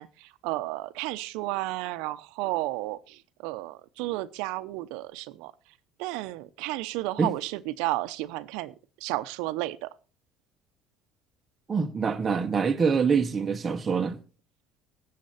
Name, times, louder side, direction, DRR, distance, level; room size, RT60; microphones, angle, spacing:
voice 1, 0.0-5.5 6.0-8.7 9.0-9.9, right 18 dB, 90° right, 0.8 m, -32 dB
voice 2, 11.7-14.2, right 5 dB, 20° right, 0.9 m, -25 dB
18.0 x 7.6 x 4.2 m
cardioid pair, 170°, 0 cm